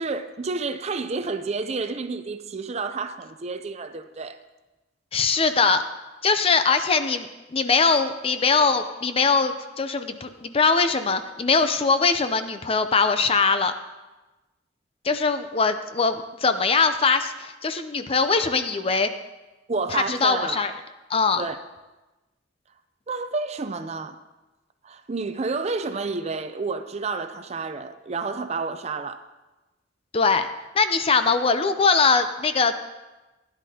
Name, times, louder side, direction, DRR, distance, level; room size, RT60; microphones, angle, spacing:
voice 1, 0.0-4.4 19.7-20.6 21.4-21.6 23.1-24.2 24.8-29.2, right 4 dB, 35° right, 10 dB, 0.5 m, -30 dB
voice 2, 5.1-5.8 6.2-13.7 15.0-19.1 19.9-20.7 21.1-21.4 30.1-30.5 30.7-32.8, left 4 dB, 30° left, 9 dB, 0.5 m, -22 dB
16.0 x 10.5 x 2.8 m, 1.1 s
head